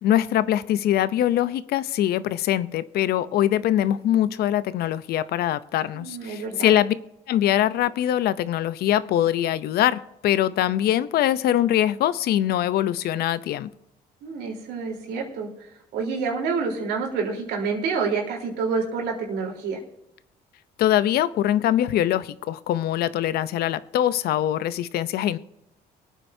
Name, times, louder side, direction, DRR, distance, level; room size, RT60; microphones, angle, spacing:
voice 1, 0.0-6.9 7.3-13.7 20.8-25.4, left 12 dB, 70° left, 0.6 m, -23 dB
voice 2, 5.9-6.8 14.2-15.5 15.9-19.8, right 5 dB, 85° right, 3.8 m, -28 dB
23.5 x 9.0 x 2.7 m
cardioid pair, 110°, 17 cm